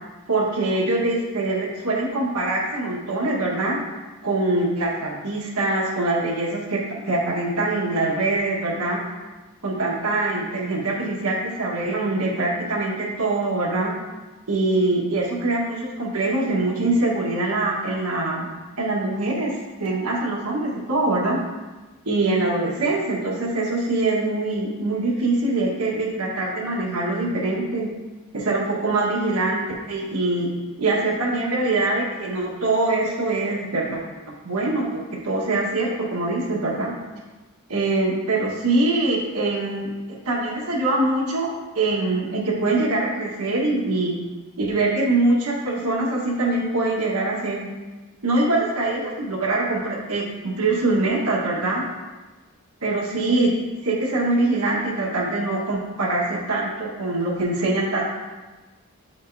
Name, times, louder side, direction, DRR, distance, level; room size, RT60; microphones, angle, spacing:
voice 1, 0.3-3.8 4.2-9.0 9.6-13.9 14.5-18.5 18.8-19.5 19.8-21.4 22.0-27.9 28.3-30.5 30.8-34.0 34.4-36.9 37.7-39.9 40.2-44.2 44.6-47.7 48.2-51.8 52.8-53.5 53.8-58.1, right 2 dB, 90° right, -2 dB, 1.4 m, -23 dB
8.6 x 5.1 x 2.7 m, 1.2 s
head